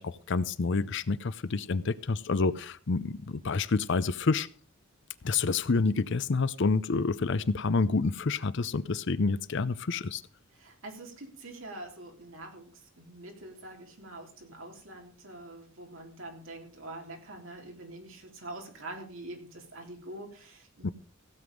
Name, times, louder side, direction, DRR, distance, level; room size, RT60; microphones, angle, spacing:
voice 1, 0.0-4.5 5.2-10.2 20.8-20.9, left 4 dB, 60° left, 16 dB, 0.6 m, -28 dB
voice 2, 10.5-20.9, right 2 dB, 65° right, 2 dB, 3.3 m, -45 dB
16.0 x 8.0 x 5.2 m, 0.42 s
head